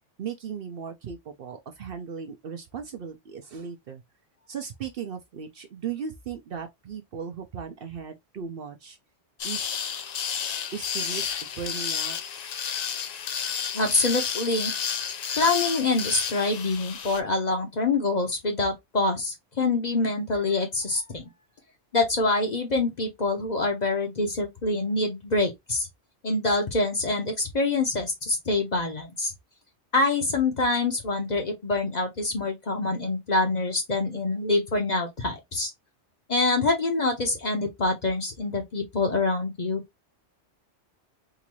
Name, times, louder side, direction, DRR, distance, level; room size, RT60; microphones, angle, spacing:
voice 1, 0.2-4.0 4.5-9.0 9.4-9.7 10.7-12.2, right 7 dB, 60° right, 0.7 m, -37 dB
sound 1, 9.4-17.2, left 7 dB, 70° left, 0.4 m, -31 dB
voice 2, 13.7-14.7 15.4-21.2 21.9-25.9 26.2-29.3 29.9-35.7 36.3-39.8, left 3 dB, 40° left, 0.9 m, -25 dB
3.8 x 2.5 x 3.0 m
omnidirectional pair, 1.2 m